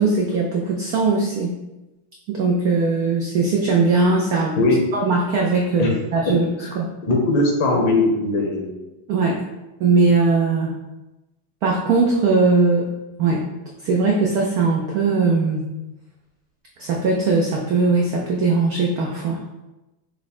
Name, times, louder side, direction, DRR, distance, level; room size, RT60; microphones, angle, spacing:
voice 1, 0.0-1.6 2.3-4.6 4.9-6.5 6.8-6.9 9.1-9.4 9.8-10.7 11.6-12.9 13.2-13.4 13.8-15.7 16.8-19.4, right 3 dB, 85° right, -1 dB, 0.8 m, -19 dB
voice 2, 7.0-8.7, left 2 dB, 70° left, 0 dB, 1.5 m, -19 dB
5.6 x 2.1 x 4.1 m, 1.0 s
omnidirectional pair, 2.2 m